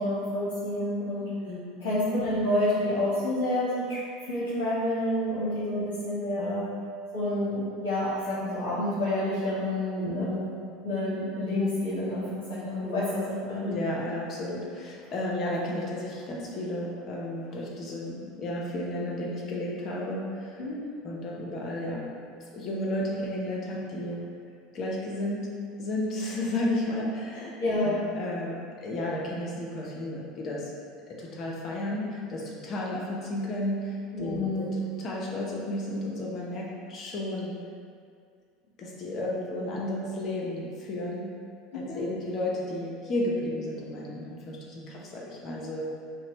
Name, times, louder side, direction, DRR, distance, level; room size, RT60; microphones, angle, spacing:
voice 1, 0.0-1.3 1.8-4.0 4.3-6.7 7.1-10.5 10.8-13.7 20.6-20.7 27.3-28.1 34.1-34.7 41.7-42.0, left 1 dB, 70° left, -11 dB, 1.1 m, -29 dB
voice 2, 1.4-1.8 6.4-6.6 10.0-10.3 13.7-20.6 21.0-22.1 22.5-24.2 24.7-25.5 25.8-27.5 27.8-30.7 31.1-34.7 35.0-37.5 38.8-41.3 41.7-45.8, left 1 dB, 45° left, -3 dB, 0.8 m, -33 dB
5.2 x 2.2 x 3.1 m, 2.2 s
hypercardioid pair, 75°, 0 cm